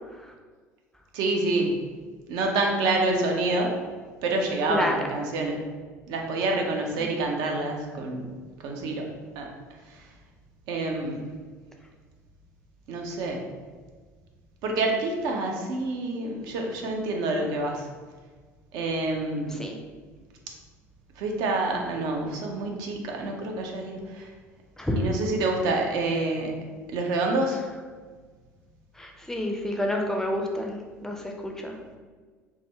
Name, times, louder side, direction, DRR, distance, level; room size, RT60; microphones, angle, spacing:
voice 1, 1.1-1.8 2.3-3.8 4.2-5.6 6.1-8.3 8.6-9.1 9.4-9.5 10.7-11.2 12.9-13.4 14.6-17.9 18.7-19.6 21.2-24.3 25.0-26.6 26.9-27.6, right 2 dB, 55° right, 1 dB, 0.6 m, -27 dB
voice 2, 4.7-5.1 7.0-7.1 19.5-19.8 24.8-25.1 29.0-31.7, left 1 dB, 5° left, 2 dB, 0.5 m, -29 dB
3.6 x 2.1 x 3.3 m, 1.5 s
figure-of-eight pair, 60°, 8 cm